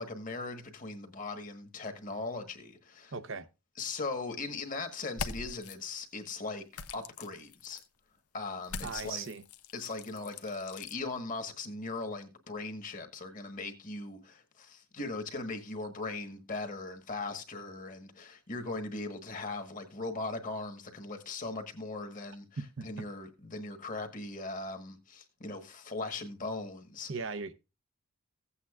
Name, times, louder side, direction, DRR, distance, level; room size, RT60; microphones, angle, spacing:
voice 1, 0.0-3.1 3.8-6.6 6.9-7.8 8.3-9.3 9.7-27.1, left 3 dB, 35° left, 1.3 m, -39 dB
voice 2, 3.1-3.5 8.8-9.4 22.8-22.9 27.1-27.5, right 4 dB, 55° right, 0.7 m, -38 dB
sound 1, 5.1-5.8 6.7-7.9 8.6-11.0, left 5 dB, 90° left, 0.8 m, -42 dB
16.0 x 8.2 x 2.4 m
head